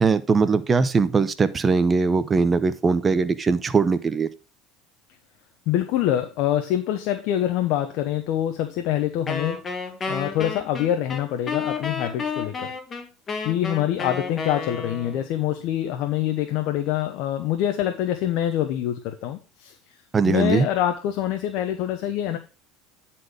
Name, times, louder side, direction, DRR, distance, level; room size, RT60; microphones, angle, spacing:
voice 1, 0.0-4.3 20.1-20.7, right 4 dB, 25° right, 12 dB, 0.8 m, -20 dB
voice 2, 5.7-9.6 10.1-12.7 13.4-19.7 20.2-22.4, left 11 dB, 65° left, 6 dB, 0.9 m, -25 dB
Wind instrument woodwind instrument, 9.3-15.3, left 4 dB, 30° left, 1.7 m, -31 dB
9.7 x 4.4 x 5.0 m, 0.32 s
supercardioid pair, 105°, 0 cm